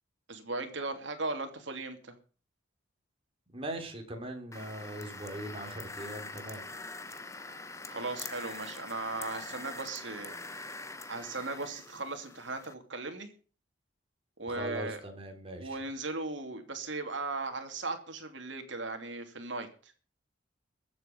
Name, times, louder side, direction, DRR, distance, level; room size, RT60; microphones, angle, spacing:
voice 1, 0.3-2.1 7.9-10.3 11.1-13.3 14.4-15.0 15.6-19.9, right 3 dB, 70° right, 6 dB, 2.8 m, -37 dB
voice 2, 3.5-6.6 14.5-15.8, right 1 dB, 30° right, 3 dB, 3.4 m, -40 dB
sound 1, 4.5-12.7, left 3 dB, 15° left, 1.0 m, -44 dB
22.5 x 7.9 x 5.3 m, 0.39 s
head